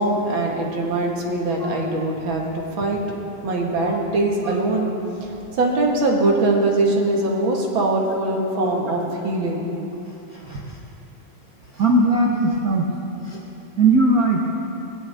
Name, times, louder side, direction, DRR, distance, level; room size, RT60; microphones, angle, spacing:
voice 1, 0.0-3.2 3.4-4.9 5.2-9.7, right 2 dB, 45° right, -1 dB, 2.4 m, -22 dB
voice 2, 11.7-12.8 13.2-13.4 13.8-14.4, right 2 dB, 85° right, -2 dB, 0.7 m, -19 dB
20.5 x 16.0 x 3.6 m, 2.9 s
omnidirectional pair, 3.3 m